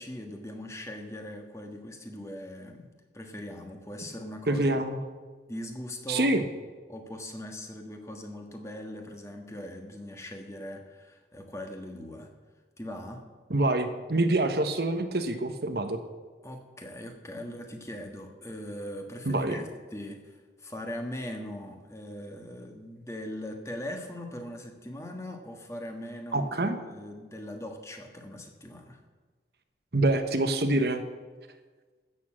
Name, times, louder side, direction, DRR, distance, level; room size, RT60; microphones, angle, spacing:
voice 1, 0.0-2.9 3.1-4.7 5.5-6.4 6.9-12.3 12.8-13.2 16.4-29.0, left 1 dB, 15° left, 3 dB, 1.4 m, -40 dB
voice 2, 4.5-5.0 6.1-6.4 13.5-16.0 19.3-19.6 26.3-26.8 29.9-31.0, right 2 dB, 65° right, 8 dB, 1.1 m, -26 dB
15.0 x 7.0 x 7.5 m, 1.4 s
head